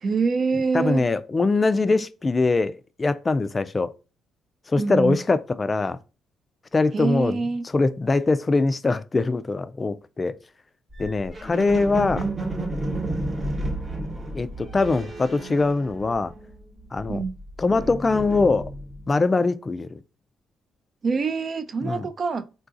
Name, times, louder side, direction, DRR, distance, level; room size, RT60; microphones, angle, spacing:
voice 1, 0.0-1.0 4.8-5.2 6.9-7.6 17.1-17.4 21.0-22.5, right 4 dB, 45° right, 0.4 m, -25 dB
voice 2, 0.7-3.9 4.7-6.0 6.7-7.4 7.7-10.4 11.0-12.3 14.3-16.3 16.9-17.2 17.6-18.7 19.1-20.0 21.8-22.1, left 3 dB, 30° left, 0.3 m, -22 dB
sound 1, 10.9-16.5 16.8-19.1, right 2 dB, 30° right, 1.0 m, -32 dB
3.8 x 2.4 x 2.4 m
cardioid pair, 75°, 0 cm